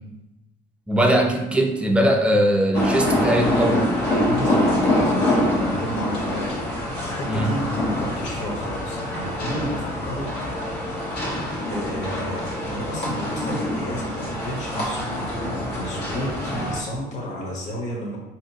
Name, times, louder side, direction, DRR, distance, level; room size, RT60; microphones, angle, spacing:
voice 1, 0.9-3.9 7.3-7.5, right 1 dB, 5° right, 2 dB, 0.5 m, -20 dB
sound 1, 2.7-16.8, left 1 dB, 80° left, 1.3 m, -25 dB
voice 2, 4.1-10.5 11.7-18.2, equal, 45° left, -3 dB, 1.1 m, -32 dB
4.7 x 2.9 x 2.7 m, 1.0 s
cardioid pair, 110°, 17 cm